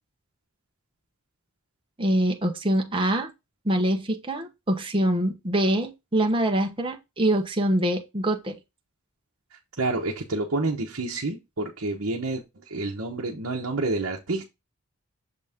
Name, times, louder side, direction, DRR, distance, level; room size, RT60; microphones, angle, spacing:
voice 1, 2.0-3.3 3.6-8.6, right 1 dB, 25° right, 1.0 m, -24 dB
voice 2, 9.8-12.4 12.7-14.4, right 2 dB, 65° right, 1.1 m, -28 dB
6.7 x 4.0 x 3.6 m
head